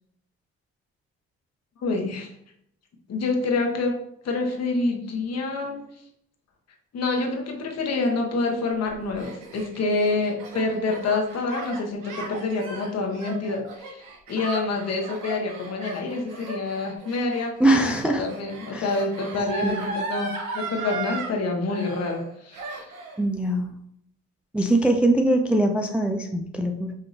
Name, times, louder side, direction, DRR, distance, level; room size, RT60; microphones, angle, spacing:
voice 1, 1.8-2.3 3.1-3.9 4.2-5.9 6.9-22.8, left 3 dB, 55° left, 2 dB, 1.0 m, -27 dB
Gasp, 8.9-21.3 21.7-22.3 22.5-23.2, right 3 dB, 85° right, 1.1 m, -36 dB
voice 2, 17.6-18.3 18.7-18.9 19.6-19.8 23.2-23.7 24.5-26.9, right 1 dB, 5° right, 3 dB, 0.3 m, -22 dB
5.2 x 2.8 x 2.6 m, 0.73 s
cardioid pair, 90°, 30 cm